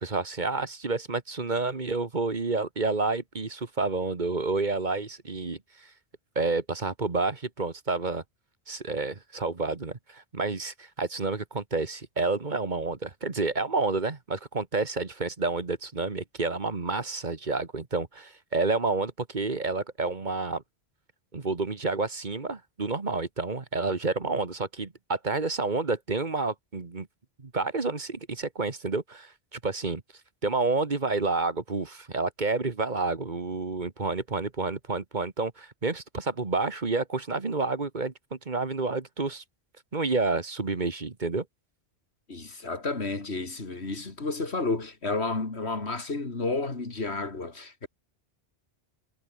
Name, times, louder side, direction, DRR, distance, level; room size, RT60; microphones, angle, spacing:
voice 1, 0.0-5.9 6.3-8.2 8.7-20.6 21.3-27.1 27.4-30.0 30.4-39.4 39.9-41.4, right 3 dB, 45° right, 1.7 m, -29 dB
voice 2, 42.3-47.9, left 3 dB, 80° left, 3.2 m, -31 dB
omnidirectional pair, 1.1 m